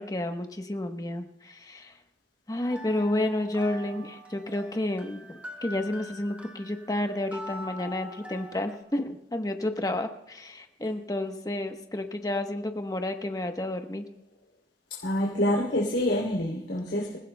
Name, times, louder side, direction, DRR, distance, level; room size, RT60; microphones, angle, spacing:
voice 1, 0.0-1.9 2.5-14.0, left 1 dB, 20° left, 5 dB, 1.0 m, -31 dB
sound 1, 2.6-8.8, equal, 10° right, 1.5 m, -44 dB
voice 2, 14.9-17.2, left 1 dB, 75° left, -4 dB, 3.1 m, -27 dB
27.5 x 16.0 x 2.2 m, 0.82 s
head